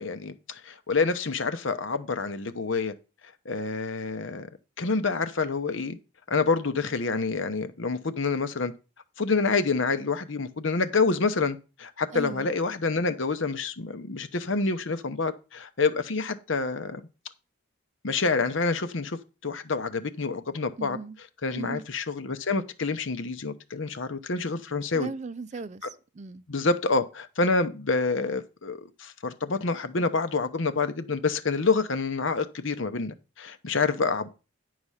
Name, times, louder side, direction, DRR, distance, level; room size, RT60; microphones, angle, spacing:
voice 1, 0.0-2.9 3.4-4.5 4.8-6.0 6.3-8.7 9.2-17.0 18.0-21.0 21.4-25.1 26.5-34.3, left 4 dB, 65° left, 0.9 m, -27 dB
voice 2, 12.1-12.5 20.8-21.2 21.6-21.8 24.9-26.4, right 4 dB, 35° right, 0.4 m, -37 dB
10.5 x 4.9 x 5.6 m
head